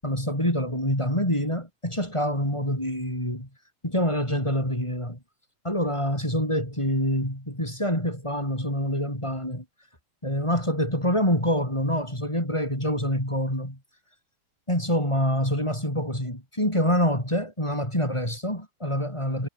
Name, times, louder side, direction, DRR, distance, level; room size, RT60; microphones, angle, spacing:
voice 1, 0.0-3.5 3.8-5.2 5.6-9.7 10.2-13.8 14.7-19.5, equal, 10° left, 7.0 m, -26 dB
omnidirectional pair, 3.6 m